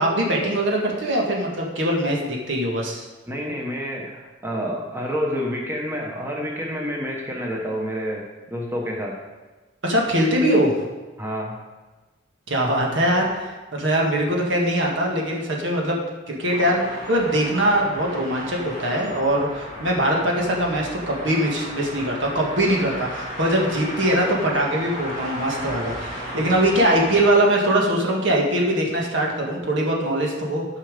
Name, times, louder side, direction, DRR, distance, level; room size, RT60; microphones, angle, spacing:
voice 1, 0.0-3.0 9.8-10.8 12.5-30.7, right 1 dB, 65° right, -1 dB, 1.7 m, -22 dB
voice 2, 3.3-9.2 11.2-11.6, equal, 10° right, -1 dB, 1.2 m, -28 dB
sound 1, 16.5-27.3, equal, 45° right, 3.6 m, -34 dB
11.5 x 5.7 x 5.2 m, 1.2 s
head